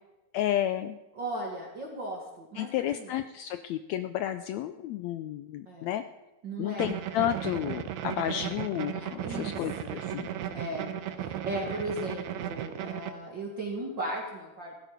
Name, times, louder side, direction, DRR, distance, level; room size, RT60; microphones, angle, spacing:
voice 1, 0.3-1.0 2.6-6.0 6.6-10.3, left 12 dB, 80° left, 10 dB, 1.7 m, -31 dB
voice 2, 1.2-3.1 5.7-5.9 6.4-6.8 9.2-9.5 9.8-10.0 10.5-14.7, right 1 dB, 40° right, -1 dB, 2.4 m, -37 dB
sound 1, 6.8-13.1, right 10 dB, 70° right, 2.0 m, -35 dB
16.5 x 14.0 x 5.1 m, 1.0 s
omnidirectional pair, 3.6 m